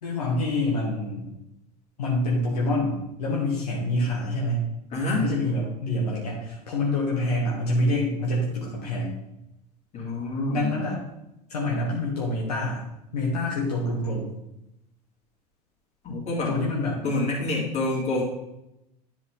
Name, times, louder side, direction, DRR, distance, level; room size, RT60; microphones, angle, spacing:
voice 1, 0.0-1.3 2.0-4.7 5.1-9.2 10.5-11.0 11.5-12.9 13.1-14.3 16.5-17.0, left 1 dB, 70° left, -4 dB, 1.8 m, -26 dB
voice 2, 4.9-5.2 9.9-10.7 16.0-16.5 17.0-18.2, left 2 dB, 30° left, -3 dB, 2.9 m, -27 dB
10.5 x 4.8 x 3.8 m, 0.86 s
figure-of-eight pair, 75°, 21 cm